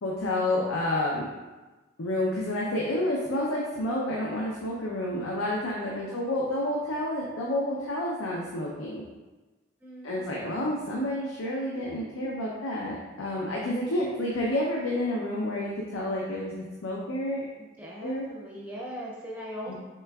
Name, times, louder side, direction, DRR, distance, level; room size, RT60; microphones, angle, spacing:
voice 1, 0.0-1.3 2.0-9.0 10.0-17.4 18.0-18.3 19.7-19.8, left 1 dB, 90° left, -3 dB, 0.6 m, -29 dB
voice 2, 9.8-10.5 11.6-12.0 17.8-19.7, equal, 10° right, -5 dB, 0.5 m, -41 dB
6.1 x 3.3 x 2.3 m, 1.2 s
head